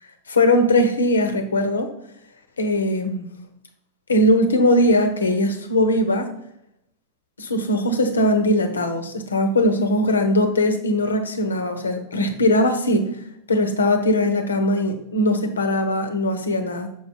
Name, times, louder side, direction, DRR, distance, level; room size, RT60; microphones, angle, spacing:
voice 1, 0.3-1.9 2.6-3.2 4.1-6.3 7.4-13.1 13.5-16.9, left 1 dB, 75° left, 7 dB, 1.0 m, -20 dB
6.7 x 5.1 x 4.5 m, 0.77 s
figure-of-eight pair, 90°, 0 cm